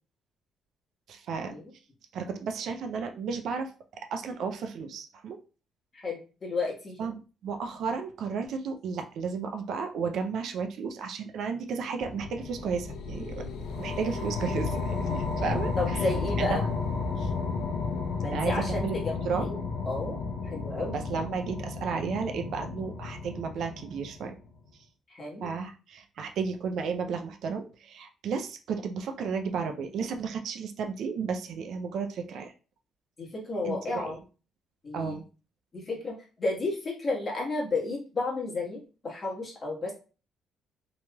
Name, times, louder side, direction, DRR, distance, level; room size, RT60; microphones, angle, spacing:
voice 1, 1.1-1.6 2.1-3.7 4.1-5.4 7.0-13.4 13.8-16.0 16.5-16.6 17.2-17.3 18.3-18.9 19.2-19.5 20.9-24.3 25.4-32.5 33.6-33.8 34.1-34.2 34.9-35.2, right 5 dB, 70° right, 5 dB, 0.4 m, -33 dB
voice 2, 5.9-7.0 15.8-16.6 18.2-19.6 19.8-20.2 20.4-20.9 25.1-25.5 33.2-34.2 34.8-35.2 35.7-39.9, left 2 dB, 35° left, -2 dB, 1.3 m, -32 dB
sound 1, 12.0-24.5, left 4 dB, 75° left, 0.4 m, -33 dB
2.9 x 2.9 x 2.2 m, 0.35 s
cardioid pair, 105°, 0 cm